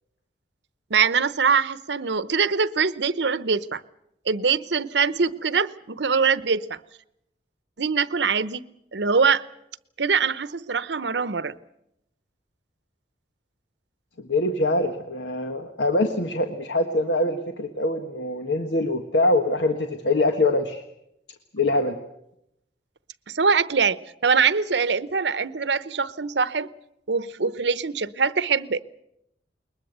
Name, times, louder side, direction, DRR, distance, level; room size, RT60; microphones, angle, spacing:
voice 1, 0.9-3.8 4.3-6.8 7.8-8.6 8.9-9.4 10.0-11.5 23.3-26.7 27.1-28.8, right 5 dB, 80° right, 17 dB, 0.8 m, -23 dB
voice 2, 14.2-20.8 21.5-22.0, left 2 dB, 85° left, 6 dB, 1.5 m, -24 dB
21.0 x 21.0 x 8.0 m, 0.81 s
head